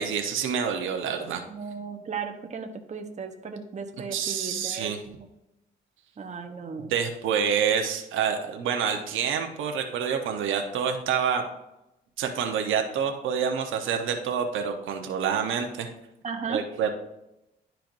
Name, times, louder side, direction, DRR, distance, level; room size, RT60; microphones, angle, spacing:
voice 1, 0.0-1.4 4.0-5.0 6.9-11.4 12.2-15.9 16.5-16.9, right 7 dB, 80° right, 4 dB, 1.0 m, -27 dB
voice 2, 1.5-5.2 6.2-6.9 16.2-16.6, right 5 dB, 35° right, 4 dB, 1.0 m, -36 dB
11.5 x 4.5 x 2.6 m, 0.89 s
cardioid pair, 90°, 20 cm